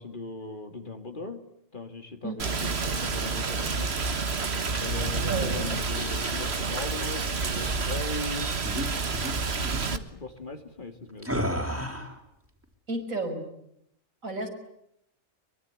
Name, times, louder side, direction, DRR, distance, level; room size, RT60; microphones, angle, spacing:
voice 1, 0.0-1.4 1.7-3.9 4.8-8.5 9.8-11.3, left 3 dB, 40° left, 7 dB, 2.6 m, -39 dB
voice 2, 2.2-2.6 5.3-5.5 12.9-13.4 14.2-14.5, right 2 dB, 85° right, 4 dB, 6.0 m, -32 dB
Rain, 2.4-10.0, right 4 dB, 55° right, 1.7 m, -29 dB
sound 1, 5.8-6.5 7.4-8.0 8.6-8.9 9.1-9.3 9.6-9.9 11.2-12.2, equal, 10° right, 4.0 m, -33 dB
24.0 x 23.5 x 10.0 m, 0.76 s
omnidirectional pair, 1.4 m